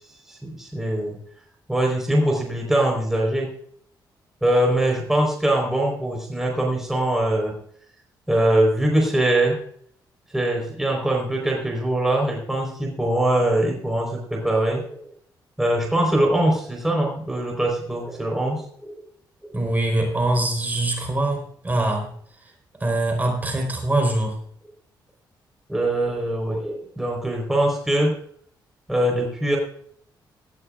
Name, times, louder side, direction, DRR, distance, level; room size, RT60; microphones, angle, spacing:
voice 1, 0.3-1.2 1.7-3.5 4.4-7.6 8.3-9.6 10.3-15.0 15.6-19.0 19.4-19.6 25.7-28.2 28.9-29.6, right 1 dB, 5° right, -1 dB, 4.3 m, -22 dB
voice 2, 19.5-22.1 22.4-22.5 22.8-24.4, right 1 dB, 20° right, 2 dB, 4.4 m, -23 dB
18.5 x 14.5 x 2.5 m, 0.62 s
cardioid pair, 90°, 8 cm